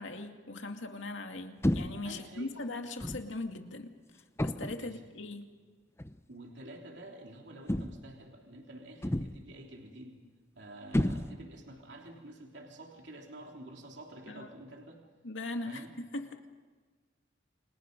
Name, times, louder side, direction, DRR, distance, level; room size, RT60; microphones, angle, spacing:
voice 1, 0.0-3.9 4.4-5.5 14.3-14.6 15.2-15.9 16.1-16.4, left 2 dB, 75° left, 5 dB, 2.3 m, -40 dB
sound 1, 1.6-2.1 3.0-3.3 4.4-4.9 6.0-6.2 7.7-8.2 9.0-9.5 10.9-11.6, left 1 dB, 15° left, 0.7 m, -32 dB
voice 2, 2.0-2.6 4.8-5.0 6.3-10.2 10.5-15.0 15.7-15.9, right 1 dB, 65° right, 1 dB, 3.3 m, -49 dB
29.5 x 26.0 x 5.4 m, 1.4 s
head